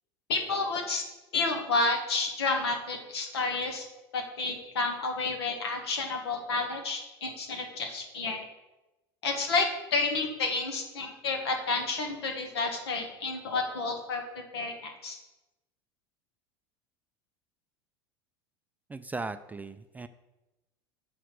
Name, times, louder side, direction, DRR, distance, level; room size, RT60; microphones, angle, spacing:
voice 1, 0.3-1.0 1.3-3.9 4.1-8.4 9.2-14.2 14.5-15.2, left 3 dB, 70° left, 3 dB, 1.5 m, -30 dB
voice 2, 18.9-20.1, right 3 dB, 10° right, 10 dB, 0.4 m, -37 dB
5.8 x 5.1 x 6.4 m, 0.99 s
figure-of-eight pair, 80°, 14 cm